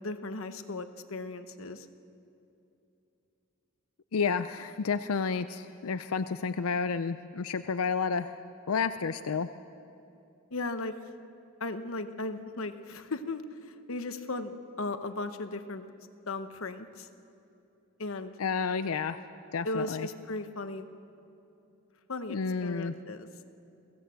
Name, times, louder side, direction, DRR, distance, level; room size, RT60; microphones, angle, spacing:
voice 1, 0.0-1.9 10.5-10.9 11.6-15.9 16.3-17.1 18.0-18.4 19.6-20.9 22.1-23.4, left 2 dB, 70° left, 9 dB, 1.1 m, -37 dB
voice 2, 4.1-8.4 8.7-9.5 18.4-19.2 19.5-20.1 22.3-22.9, left 5 dB, 90° left, 11 dB, 0.5 m, -30 dB
23.0 x 16.0 x 7.7 m, 2.8 s
head